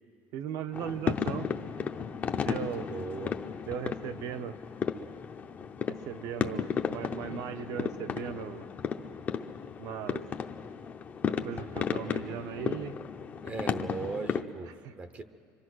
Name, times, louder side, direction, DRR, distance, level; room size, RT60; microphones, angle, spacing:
voice 1, 0.3-1.5 2.4-2.9 3.6-4.6 5.9-8.7 9.8-10.3 11.2-12.9 14.8-14.9, right 9 dB, 55° right, 10 dB, 0.9 m, -38 dB
sound 1, 0.7-14.4, left 6 dB, 25° left, 0.7 m, -34 dB
voice 2, 2.8-3.4 13.4-15.2, right 4 dB, 25° right, 10 dB, 0.8 m, -38 dB
26.0 x 23.5 x 6.3 m, 2.4 s
cardioid pair, 155°, 7 cm